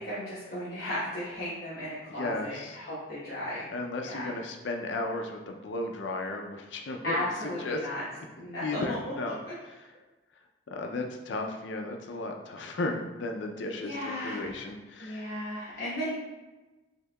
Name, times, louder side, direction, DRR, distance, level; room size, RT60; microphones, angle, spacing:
voice 1, 0.0-3.7 4.0-4.3 7.0-8.0 8.4-9.0 9.2-9.5 13.8-14.6 15.0-16.1, left 1 dB, 55° left, -11 dB, 1.1 m, -35 dB
voice 2, 2.1-2.8 3.7-7.9 8.6-9.4 9.6-9.9 10.7-14.0 14.2-15.3, left 2 dB, 80° left, 3 dB, 0.5 m, -35 dB
6.5 x 2.7 x 2.2 m, 1.1 s
head